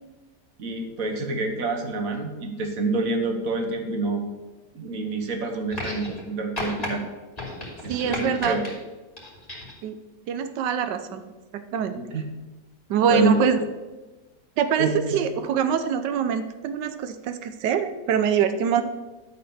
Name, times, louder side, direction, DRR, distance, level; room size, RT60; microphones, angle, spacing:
voice 1, 0.6-4.2 4.7-7.1 7.8-8.6 12.1-12.2 13.1-13.4 14.8-15.2, right 3 dB, 55° right, 5 dB, 1.6 m, -27 dB
sound 1, 5.7-6.3 6.6-6.9 7.4-8.7 9.2-9.8 10.8-10.9, left 1 dB, 20° left, 3.2 m, -33 dB
voice 2, 7.9-8.6 9.8-10.0 10.3-11.3 11.7-12.0 12.9-13.6 14.6-18.8, right 7 dB, 90° right, 9 dB, 1.4 m, -24 dB
12.0 x 4.2 x 6.8 m, 1.2 s
omnidirectional pair, 1.8 m